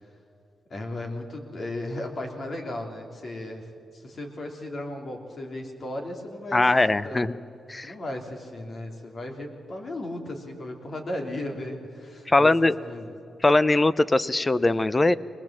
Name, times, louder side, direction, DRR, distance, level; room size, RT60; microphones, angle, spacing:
voice 1, 0.7-3.7 3.9-6.6 7.0-7.3 7.8-13.1, left 1 dB, 45° left, 2 dB, 3.1 m, -35 dB
voice 2, 6.5-7.3 7.7-7.9 12.3-12.7 13.4-15.2, left 2 dB, 20° left, 17 dB, 0.6 m, -21 dB
21.5 x 20.5 x 7.4 m, 2.6 s
cardioid pair, 90°, 0 cm